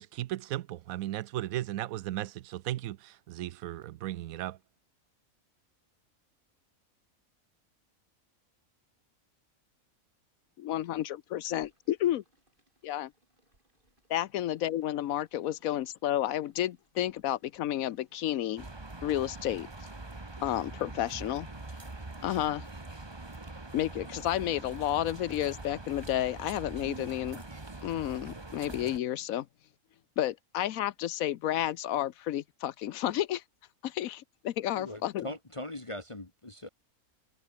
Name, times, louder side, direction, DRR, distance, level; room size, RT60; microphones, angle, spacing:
voice 1, 0.0-4.6, right 14 dB, 80° right, 1.0 m, -36 dB
voice 2, 10.6-12.2 12.8-13.1 14.1-18.7 19.0-19.7 20.4-21.5 22.2-22.6 23.7-27.4 27.8-29.5 30.2-33.4 33.8-35.3, left 12 dB, 75° left, 1.1 m, -31 dB
sound 1, 11.5-20.0, right 1 dB, 35° right, 6.9 m, -72 dB
sound 2, 18.6-29.0, right 2 dB, 20° right, 1.5 m, -43 dB
voice 3, 34.7-36.7, left 1 dB, 20° left, 1.6 m, -41 dB
omnidirectional pair, 1.5 m